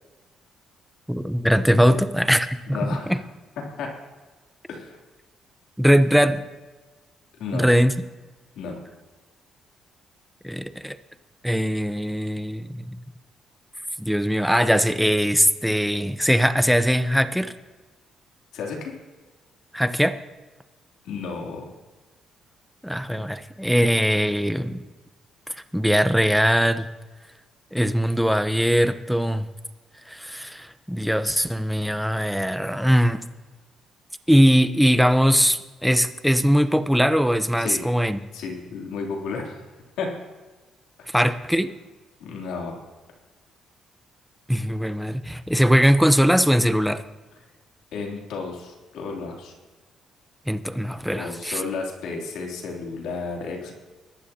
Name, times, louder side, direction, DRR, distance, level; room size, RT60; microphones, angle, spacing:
voice 1, 1.1-2.8 3.1-3.2 5.8-6.4 7.5-7.9 10.4-11.0 11.4-12.9 14.0-17.5 19.7-20.2 22.8-24.8 25.7-26.9 27.7-29.5 30.1-33.2 34.3-38.2 41.1-41.7 44.5-47.0 50.5-51.6, equal, ahead, 10 dB, 0.8 m, -21 dB
voice 2, 2.7-3.2 3.7-3.9 4.7-5.0 7.4-7.7 8.6-8.8 18.5-18.9 21.0-21.7 37.6-37.8 38.3-39.6 40.0-40.1 42.2-42.8 47.9-49.5 51.1-53.7, left 4 dB, 85° left, 0 dB, 3.1 m, -32 dB
22.0 x 12.0 x 2.9 m, 1.3 s
cardioid pair, 90°, 0 cm